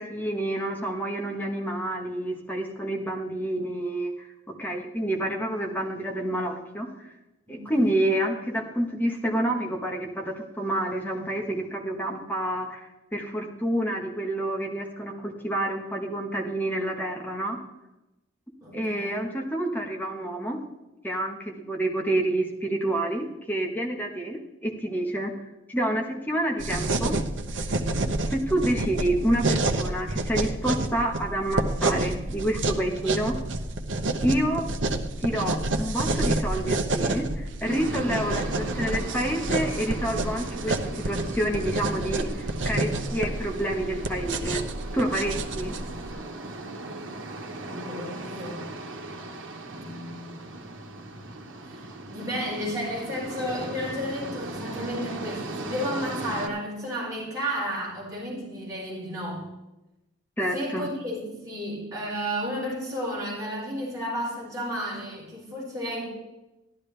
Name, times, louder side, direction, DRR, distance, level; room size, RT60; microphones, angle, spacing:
voice 1, 0.0-7.1 7.5-17.6 18.7-20.6 21.0-25.3 25.7-27.2 28.3-33.4 34.2-34.7 35.2-44.6 44.9-45.7 60.4-60.9, right 1 dB, 10° left, 2 dB, 1.3 m, -28 dB
voice 2, 7.5-7.9 18.6-19.2 47.6-48.7 49.6-50.5 51.7-59.4 60.5-66.1, equal, 20° right, -8 dB, 4.9 m, -33 dB
sound 1, 26.6-46.1, right 2 dB, 70° right, 0.9 m, -29 dB
sound 2, 37.6-56.5, right 2 dB, 90° right, 1.3 m, -38 dB
13.5 x 11.5 x 3.3 m, 0.97 s
head